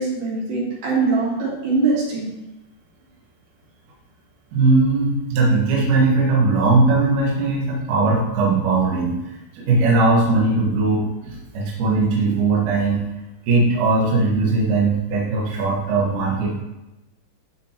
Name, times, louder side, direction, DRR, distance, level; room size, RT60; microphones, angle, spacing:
voice 1, 0.0-2.3, right 3 dB, 75° right, -8 dB, 5.3 m, -22 dB
voice 2, 4.5-9.1 9.5-13.1 13.5-16.6, right 3 dB, 60° right, -4 dB, 2.5 m, -19 dB
12.5 x 5.2 x 2.9 m, 0.98 s
omnidirectional pair, 4.8 m